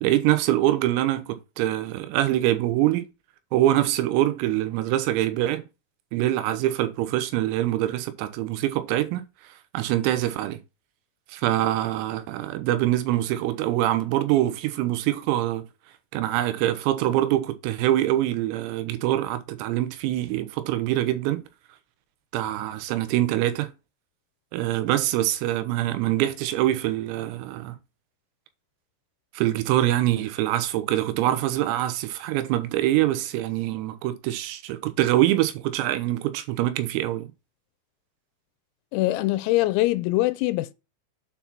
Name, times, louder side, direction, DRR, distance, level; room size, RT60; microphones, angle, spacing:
voice 1, 0.0-3.1 3.5-5.7 6.1-10.6 11.3-15.6 16.1-21.4 22.3-23.7 24.5-27.8 29.3-37.3, right 14 dB, 85° right, 3.7 m, -24 dB
voice 2, 38.9-40.7, left 18 dB, 90° left, 3.5 m, -23 dB
8.5 x 4.7 x 5.7 m
omnidirectional pair, 6.0 m